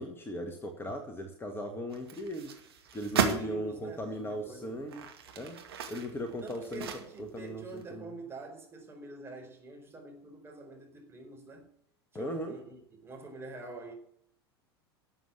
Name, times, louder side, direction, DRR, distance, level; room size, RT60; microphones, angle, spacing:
voice 1, 0.0-2.6 2.9-5.6 5.9-6.9 7.2-8.1 12.1-12.6, equal, 15° left, 6 dB, 1.9 m, -38 dB
sound 1, 1.9-3.5 4.1-4.2 4.8-7.5 7.8-7.9, right 7 dB, 65° right, 2.2 m, -35 dB
voice 2, 3.3-4.8 6.4-11.7 12.1-13.9, right 3 dB, 15° right, 2 dB, 4.5 m, -46 dB
12.0 x 7.8 x 8.8 m, 0.68 s
figure-of-eight pair, 85°, 14 cm